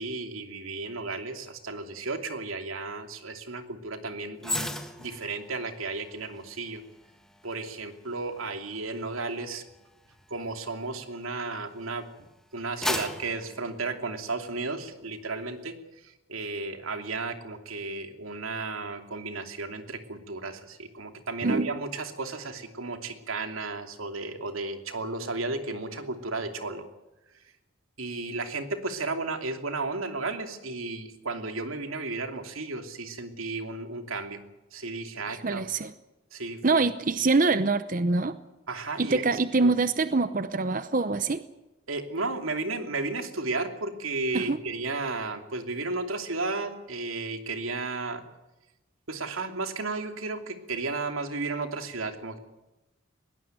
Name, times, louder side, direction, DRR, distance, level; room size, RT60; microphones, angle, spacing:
voice 1, 0.0-4.7 5.0-6.8 7.4-9.6 10.3-12.0 12.5-15.7 16.0-26.8 28.0-34.4 34.7-35.6 36.3-36.8 38.7-39.2 39.6-39.7 41.9-48.2 49.1-52.4, right 3 dB, 90° right, 6 dB, 2.8 m, -33 dB
sound 1, 4.4-11.8 12.3-14.6 15.0-15.2, left 1 dB, ahead, 1.6 m, -38 dB
voice 2, 35.3-35.9 36.6-38.4 39.0-41.4 44.3-44.6, right 3 dB, 40° right, 12 dB, 0.7 m, -25 dB
21.0 x 17.5 x 9.3 m, 1.0 s
head